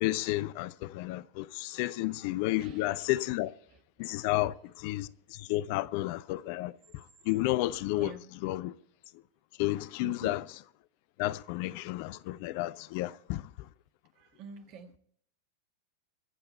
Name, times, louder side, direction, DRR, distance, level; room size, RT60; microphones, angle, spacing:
voice 1, 0.0-3.5 4.0-5.1 5.4-6.7 7.3-8.1 8.4-8.7 9.6-10.4 11.2-13.4, left 17 dB, 45° left, 0.5 m, -31 dB
voice 2, 2.5-3.2 3.7-3.8 4.2-4.3 7.9-8.3 10.0-10.4 14.2-15.0, right 6 dB, 40° right, 1.7 m, -47 dB
23.0 x 7.9 x 4.3 m
figure-of-eight pair, 90°, 0 cm